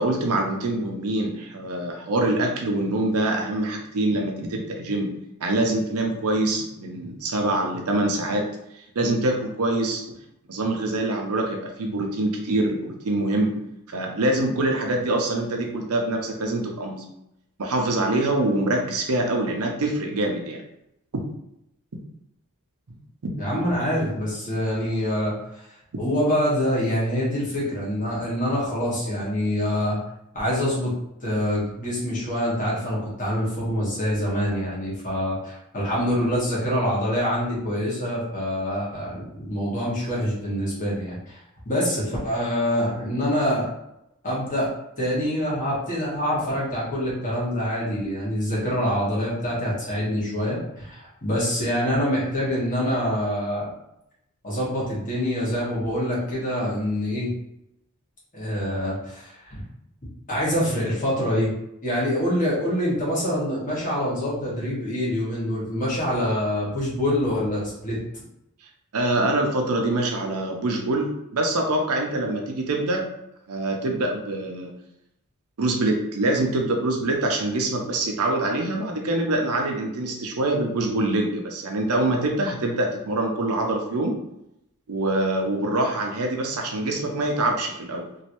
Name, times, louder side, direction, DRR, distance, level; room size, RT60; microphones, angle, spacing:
voice 1, 0.0-5.1 5.4-8.5 8.9-10.0 10.5-13.5 13.9-17.0 17.6-20.6 23.2-23.3 68.9-73.0 73.5-74.7 75.6-84.2 84.9-88.1, right 2 dB, 75° right, 2 dB, 0.7 m, -24 dB
voice 2, 23.4-25.3 26.0-30.0 30.3-30.9 31.2-41.4 41.6-43.7 44.2-44.7 45.0-53.7 54.4-57.3 58.3-59.6 60.3-61.5 61.8-68.2, equal, 35° left, -6 dB, 1.4 m, -25 dB
3.1 x 2.6 x 2.9 m, 0.82 s
head